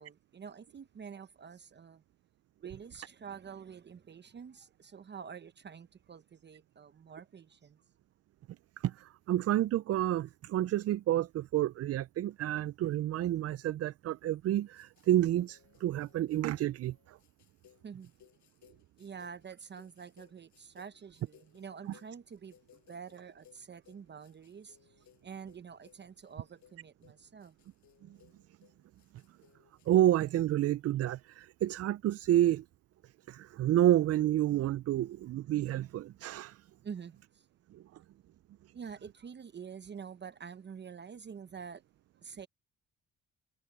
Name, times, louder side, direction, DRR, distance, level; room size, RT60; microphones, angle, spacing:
voice 1, 0.0-2.0 2.6-7.8 17.8-18.1 19.0-22.6 22.9-27.5 36.8-37.5 38.7-41.8 42.2-42.5, right 6 dB, 35° right, 0.8 m, -47 dB
voice 2, 8.8-17.2 29.9-32.6 33.3-36.6 37.7-37.8, right 13 dB, 55° right, 0.4 m, -29 dB
sound 1, 14.7-29.9, left 11 dB, 75° left, 5.9 m, -65 dB
cardioid pair, 90°, 30 cm